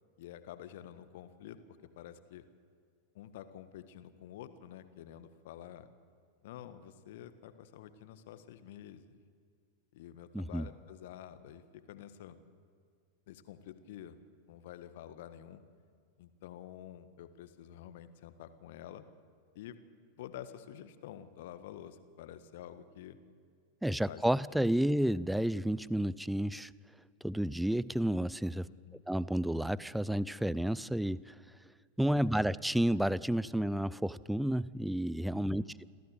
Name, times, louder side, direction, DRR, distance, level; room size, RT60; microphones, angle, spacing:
voice 1, 0.2-2.5 3.1-5.9 6.4-9.1 9.9-12.4 13.3-14.2 14.5-15.6 16.2-19.0 19.5-19.8 20.2-23.2 23.9-24.2 24.6-24.7 28.6-29.0 32.0-32.3 35.3-35.8, left 11 dB, 55° left, 12 dB, 1.5 m, -49 dB
voice 2, 10.3-10.7 23.8-26.7 27.2-28.7 29.1-31.4 32.0-35.6, right 1 dB, 5° right, 20 dB, 0.5 m, -31 dB
27.0 x 15.5 x 8.0 m, 2.2 s
figure-of-eight pair, 90°, 0 cm